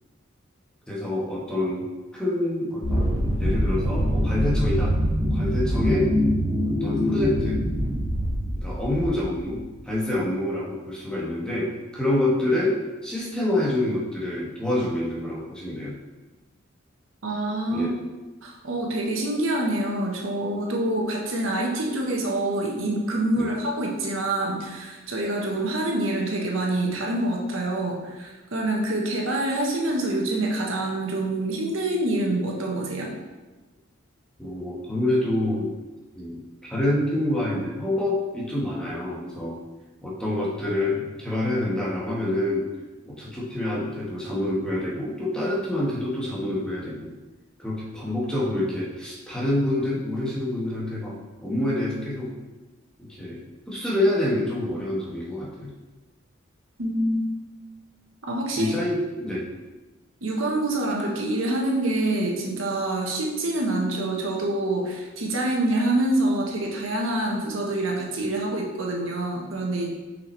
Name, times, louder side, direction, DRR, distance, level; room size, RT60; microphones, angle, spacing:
voice 1, 0.9-1.9 2.1-4.9 5.2-6.1 6.6-7.6 8.6-16.0 17.7-17.9 23.3-23.5 34.4-35.7 36.1-39.6 40.0-42.6 43.0-47.1 47.6-52.3 53.2-53.4 53.7-55.7 58.5-59.5, left 1 dB, 5° left, -6 dB, 1.4 m, -27 dB
sound 1, 2.8-9.6, equal, 25° right, 2.2 m, -24 dB
voice 2, 17.2-17.9 18.4-33.1 56.8-57.3 58.2-58.7 60.2-69.9, right 1 dB, 85° right, -1 dB, 1.2 m, -26 dB
5.9 x 5.7 x 3.3 m, 1.2 s
head